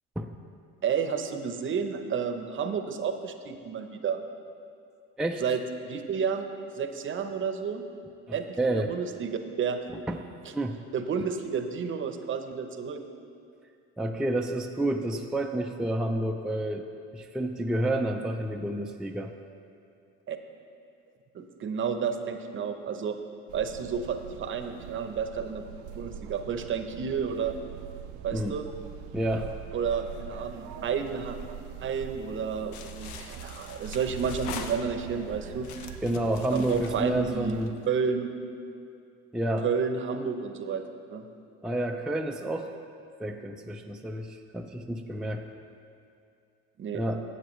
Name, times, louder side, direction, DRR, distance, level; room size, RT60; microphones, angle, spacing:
voice 1, 0.8-4.2 5.4-6.5 6.8-7.8 8.3-9.8 10.4-10.5 10.9-13.0 20.3-20.4 21.3-23.2 23.5-25.7 25.9-27.6 28.2-28.6 29.7-31.4 31.8-35.7 36.5-37.6 37.9-38.3 39.6-41.3 46.8-47.1, right 6 dB, 45° right, 7 dB, 0.8 m, -31 dB
voice 2, 8.6-8.9 10.1-10.2 10.5-10.8 14.0-16.9 17.1-19.3 28.3-28.6 29.1-29.5 36.0-37.7 39.3-39.7 41.6-42.7 43.2-45.5 46.9-47.2, right 1 dB, ahead, 2 dB, 0.4 m, -29 dB
sound 1, 23.5-37.7, right 8 dB, 85° right, 0.6 m, -43 dB
sound 2, 32.7-35.2 35.6-37.8, left 6 dB, 75° left, 0.8 m, -43 dB
13.5 x 8.1 x 3.1 m, 2.4 s
supercardioid pair, 90°, 29 cm